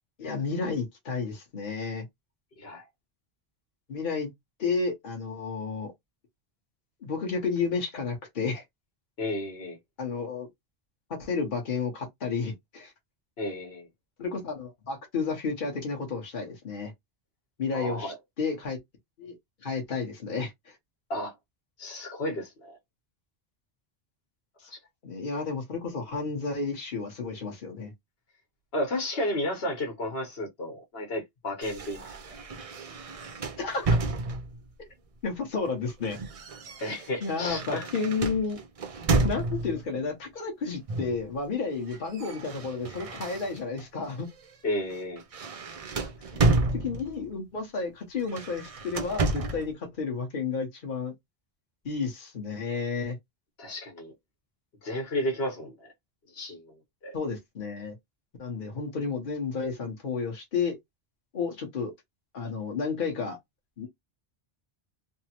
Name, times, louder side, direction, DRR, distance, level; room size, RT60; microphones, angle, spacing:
voice 1, 0.2-2.1 3.9-4.3 4.6-5.9 7.0-8.6 10.0-10.5 11.1-12.9 14.2-16.9 17.6-18.8 19.2-19.3 19.6-20.8 25.0-27.9 33.6-33.9 35.2-36.2 37.2-38.6 39.2-44.3 46.3-46.4 46.7-51.1 51.8-53.2 57.1-58.0 58.4-60.8 61.3-61.9 62.3-63.4 63.8-63.9, left 4 dB, 55° left, 1.1 m, -31 dB
voice 2, 9.2-9.8 13.4-13.9 17.7-18.2 21.1-21.3 21.8-22.8 24.7-24.8 28.7-32.1 36.8-37.9 44.6-45.2 53.6-54.1 54.8-55.9 56.3-56.7 57.0-57.1, left 1 dB, 75° left, 1.3 m, -32 dB
sound 1, 31.6-34.7 35.6-39.9 40.9-41.3 41.5-43.9 44.3-44.5 44.9-47.3 48.2-49.7, right 3 dB, 45° right, 0.5 m, -30 dB
3.3 x 2.0 x 2.9 m
omnidirectional pair, 1.0 m